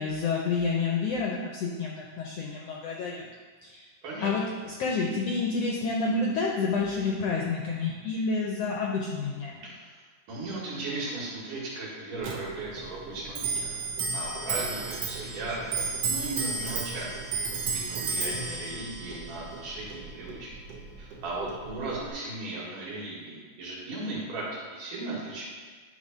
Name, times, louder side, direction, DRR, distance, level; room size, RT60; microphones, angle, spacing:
voice 1, 0.0-3.3 3.6-3.8 4.2-9.6, left 4 dB, 80° left, -2 dB, 1.4 m, -29 dB
voice 2, 9.6-13.8 14.1-17.2 17.7-20.5 21.0-25.4, right 2 dB, 85° right, -6 dB, 3.6 m, -37 dB
Clock, 12.2-22.1, right 4 dB, 65° right, 1.5 m, -33 dB
10.5 x 3.5 x 5.4 m, 1.5 s
omnidirectional pair, 3.6 m